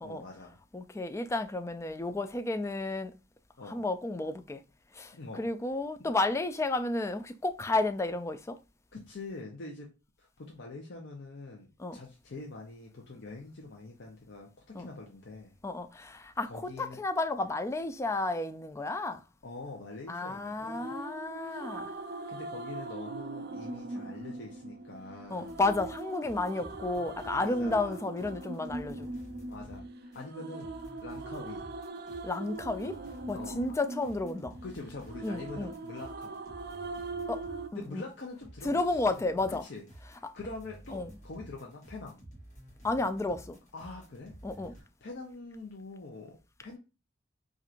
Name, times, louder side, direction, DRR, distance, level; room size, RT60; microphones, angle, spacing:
voice 1, 0.0-0.6 3.6-3.8 5.1-5.5 8.9-9.9 10.2-15.5 16.2-17.0 19.4-20.9 21.4-21.6 22.3-25.6 27.4-28.0 29.5-31.7 33.3-33.6 34.6-36.3 37.7-42.2 43.7-44.3 44.7-46.8, left 3 dB, 65° left, 0.7 m, -45 dB
voice 2, 0.7-3.1 3.7-4.6 4.9-8.6 11.8-12.0 14.7-14.9 15.6-19.2 20.1-21.9 25.3-29.1 32.2-33.0 33.3-34.5 35.2-35.7 37.3-37.4 37.7-38.0 38.6-39.6 40.2-40.3 40.9-41.1 42.8-43.6 44.4-44.7, left 2 dB, 15° left, 0.3 m, -32 dB
sound 1, 20.6-37.7, right 2 dB, 60° right, 0.4 m, -41 dB
sound 2, 25.4-37.7 37.9-44.8, right 1 dB, 40° left, 1.4 m, -52 dB
4.4 x 2.5 x 2.4 m
head